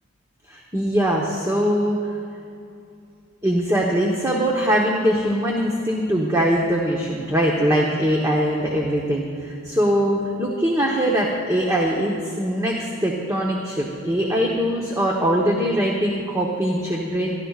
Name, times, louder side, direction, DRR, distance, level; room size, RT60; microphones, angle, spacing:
voice 1, 0.5-2.0 3.4-17.3, equal, 15° right, -2 dB, 1.0 m, -22 dB
29.5 x 12.0 x 2.4 m, 2.5 s
head